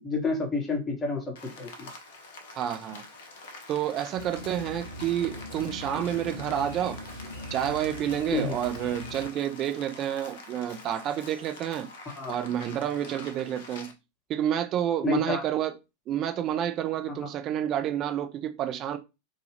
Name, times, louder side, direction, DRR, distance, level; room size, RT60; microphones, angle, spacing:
voice 1, 0.0-1.9 8.3-8.5 12.2-12.3 15.0-15.4, left 4 dB, 20° left, 1.0 m, -29 dB
Rain, 1.4-13.9, left 3 dB, 55° left, 0.6 m, -46 dB
voice 2, 2.6-3.0 3.7-7.0 7.5-11.9 12.3-13.9 14.3-15.8 16.1-19.0, right 10 dB, 35° right, 0.5 m, -29 dB
sound 1, 4.1-9.3, left 1 dB, 60° right, 1.0 m, -41 dB
2.7 x 2.3 x 3.2 m
figure-of-eight pair, 90°, 0 cm